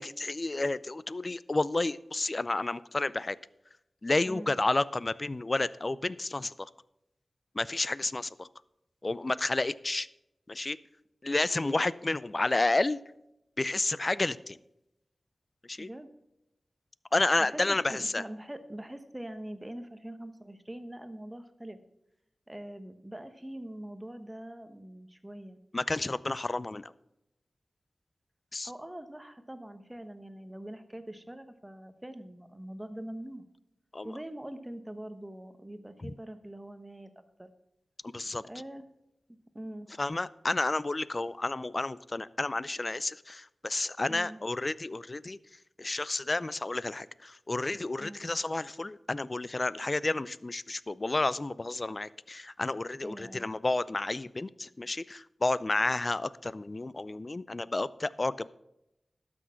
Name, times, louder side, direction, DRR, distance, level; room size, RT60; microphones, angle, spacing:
voice 1, 0.0-3.4 4.0-6.7 7.5-8.5 9.0-10.1 10.5-10.8 11.2-13.0 13.6-14.6 15.6-15.9 17.1-18.2 25.7-26.9 28.5-28.7 33.9-34.1 36.0-36.1 38.0-38.4 40.0-45.4 45.8-58.5, left 2 dB, 40° left, 18 dB, 0.4 m, -31 dB
voice 2, 15.8-16.1 17.4-17.6 17.9-21.8 22.5-25.6 28.6-33.4 34.0-37.1 37.4-37.5 38.5-38.9 39.5-39.9 44.1-44.4 48.0-48.3 53.0-53.5, right 1 dB, 15° right, 9 dB, 1.1 m, -43 dB
12.0 x 6.2 x 5.8 m, 0.87 s
cardioid pair, 50°, 0 cm